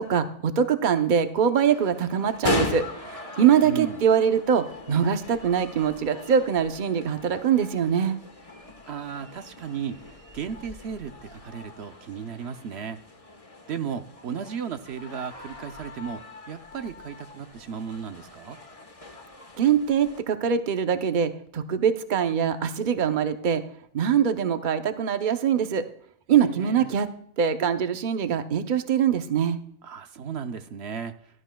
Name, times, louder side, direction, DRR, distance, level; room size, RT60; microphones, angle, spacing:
voice 1, 0.0-8.2 19.6-23.6 23.9-25.8 26.3-27.1 27.4-29.6, right 8 dB, 50° right, 9 dB, 0.9 m, -23 dB
sound 1, 1.7-20.2, left 2 dB, 35° left, 1.3 m, -38 dB
voice 2, 3.6-4.0 8.9-10.0 10.3-13.0 13.7-16.2 16.5-18.6 26.3-26.9 29.8-31.4, right 7 dB, 75° right, 8 dB, 1.0 m, -35 dB
17.0 x 12.5 x 2.3 m, 0.64 s
omnidirectional pair, 1.1 m